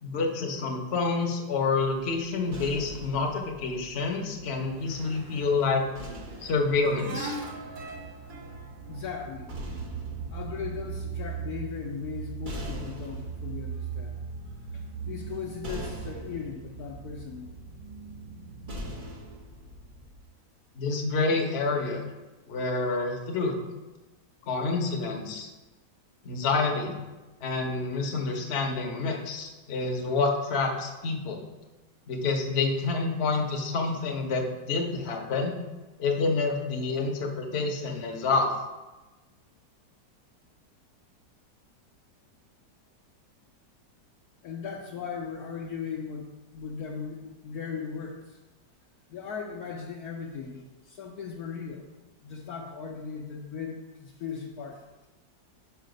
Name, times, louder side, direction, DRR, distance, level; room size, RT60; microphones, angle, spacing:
voice 1, 0.0-5.8 6.4-7.3 20.7-22.0 22.5-23.5 24.5-25.5 26.2-26.9 27.4-31.4 32.1-35.6 36.0-38.5, left 3 dB, 45° left, 1 dB, 1.0 m, -28 dB
sound 1, 2.5-5.0 5.9-8.2 9.2-20.2, equal, 40° right, 0.7 m, -43 dB
sound 2, 4.4-18.8, right 5 dB, 55° right, 1.3 m, -40 dB
voice 2, 8.9-9.5 10.3-14.2 14.5-17.5 44.4-46.3 46.5-48.4 49.1-51.9 52.2-55.1, left 6 dB, 65° left, 0 dB, 1.1 m, -38 dB
5.7 x 5.2 x 5.2 m, 1.1 s
omnidirectional pair, 1.9 m